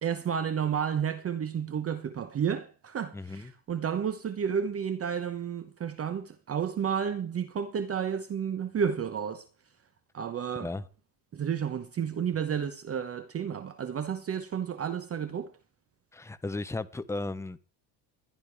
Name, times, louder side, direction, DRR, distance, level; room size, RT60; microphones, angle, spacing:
voice 1, 0.0-9.5 10.1-10.7 11.3-15.5, right 7 dB, 30° right, 0.9 m, -31 dB
voice 2, 3.1-3.5 10.6-10.9 16.1-17.6, left 2 dB, 5° left, 0.7 m, -35 dB
21.0 x 11.5 x 3.5 m
cardioid pair, 135°, 49 cm